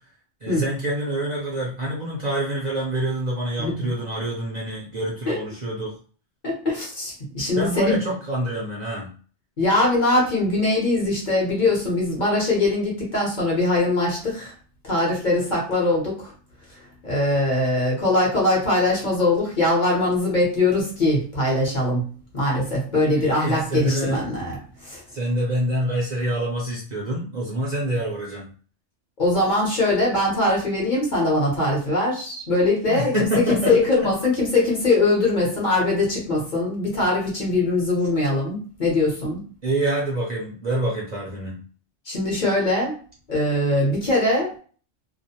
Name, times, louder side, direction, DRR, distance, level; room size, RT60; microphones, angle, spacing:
voice 1, 0.4-5.9 7.6-9.1 23.2-24.2 25.1-28.5 32.9-34.1 39.6-41.6, right 1 dB, 45° right, -5 dB, 0.6 m, -26 dB
voice 2, 3.6-3.9 5.3-5.4 6.4-8.0 9.6-14.5 14.8-16.3 17.0-22.0 22.3-24.6 24.8-25.0 29.2-39.4 42.1-42.9 43.3-44.5, left 2 dB, 45° left, -3 dB, 0.9 m, -22 dB
2.4 x 2.1 x 2.7 m, 0.40 s
omnidirectional pair, 1.2 m